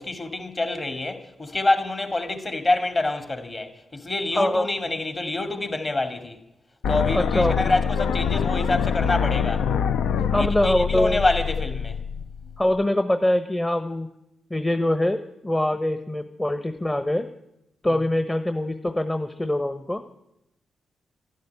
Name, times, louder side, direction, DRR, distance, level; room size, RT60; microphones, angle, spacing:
voice 1, 0.0-6.4 6.9-9.7 10.4-12.0, left 2 dB, 40° left, 2.5 m, -26 dB
voice 2, 4.3-4.7 7.1-7.7 10.3-11.2 12.6-14.1 14.5-17.3 17.8-20.0, left 1 dB, 20° left, 1.0 m, -23 dB
sound 1, 6.8-12.8, left 7 dB, 85° left, 0.5 m, -25 dB
12.5 x 12.0 x 9.7 m
supercardioid pair, 50°, 0 cm